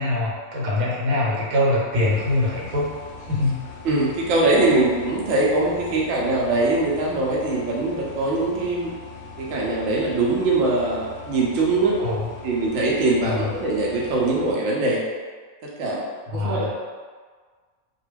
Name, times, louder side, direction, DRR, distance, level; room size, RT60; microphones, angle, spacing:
voice 1, 0.0-2.9 3.2-3.7 12.0-12.3 13.2-13.4 16.3-16.7, left 2 dB, 85° right, -5 dB, 1.2 m, -23 dB
sound 1, 1.9-14.6, left 4 dB, 65° left, 0.6 m, -41 dB
voice 2, 3.8-8.9 9.4-12.0 12.4-15.0 15.6-16.7, right 2 dB, 65° right, -4 dB, 0.8 m, -22 dB
2.3 x 2.2 x 3.2 m, 1.5 s
omnidirectional pair, 1.4 m